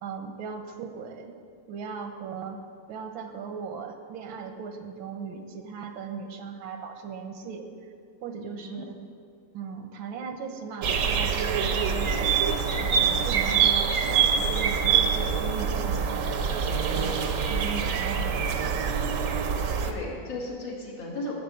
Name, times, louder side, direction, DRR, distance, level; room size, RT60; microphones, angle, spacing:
voice 1, 0.0-1.4 1.7-2.6 2.9-7.7 8.2-8.9 9.5-12.3 12.8-17.1 17.5-18.8, right 6 dB, 85° right, 6 dB, 1.7 m, -38 dB
voice 2, 8.4-8.8 13.4-13.7 19.8-21.3, left 2 dB, 85° left, -3 dB, 2.8 m, -36 dB
sound 1, 10.8-19.9, right 6 dB, 60° right, 0.8 m, -25 dB
12.0 x 7.7 x 5.5 m, 2.3 s
omnidirectional pair, 2.1 m